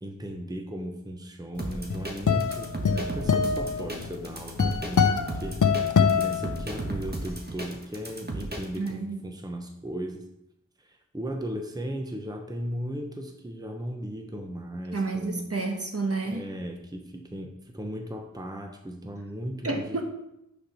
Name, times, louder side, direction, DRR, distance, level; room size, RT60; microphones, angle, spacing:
voice 1, 0.0-10.3 10.8-15.5 16.3-20.0, equal, 15° right, 4 dB, 0.8 m, -36 dB
sound 1, 1.6-8.9, right 2 dB, 30° right, 1.4 m, -35 dB
sound 2, 1.7-7.1, left 6 dB, 90° left, 0.5 m, -25 dB
voice 2, 8.8-9.2 14.9-16.5 19.6-20.0, right 3 dB, 50° right, 2 dB, 1.1 m, -30 dB
6.4 x 4.3 x 5.6 m, 0.85 s
wide cardioid pair, 45°, 30 cm